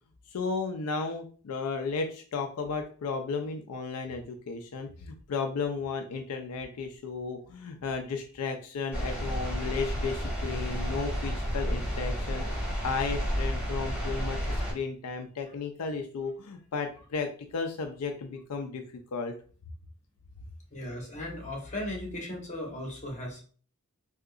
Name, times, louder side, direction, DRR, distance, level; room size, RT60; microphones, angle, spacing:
voice 1, 0.3-18.8 19.1-19.3, left 4 dB, 80° left, 5 dB, 0.4 m, -34 dB
sound 1, 8.9-14.7, equal, 10° right, 1.5 m, -31 dB
voice 2, 20.7-23.4, left 1 dB, 35° left, -1 dB, 1.1 m, -37 dB
3.7 x 2.8 x 2.4 m, 0.41 s
head